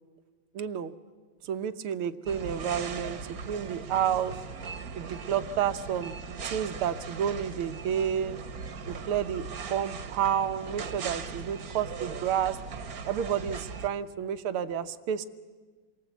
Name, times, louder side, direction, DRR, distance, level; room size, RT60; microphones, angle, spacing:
voice 1, 0.6-0.9 1.4-4.4 5.0-6.1 6.4-8.4 8.9-12.6 13.1-15.2, right 9 dB, 85° right, 11 dB, 1.9 m, -30 dB
sound 1, 2.3-13.9, right 5 dB, 50° right, 1.5 m, -39 dB
28.0 x 23.0 x 8.2 m, 1.4 s
omnidirectional pair, 2.3 m